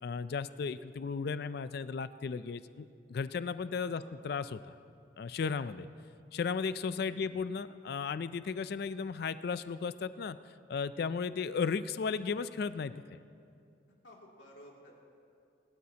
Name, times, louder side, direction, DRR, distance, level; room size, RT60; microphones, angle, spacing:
voice 1, 0.0-4.7 5.2-5.9 6.3-10.4 10.7-13.0, left 5 dB, 55° left, 14 dB, 0.3 m, -35 dB
voice 2, 14.0-14.9, left 1 dB, 75° left, -2 dB, 2.6 m, -54 dB
27.0 x 12.5 x 2.8 m, 2.4 s
head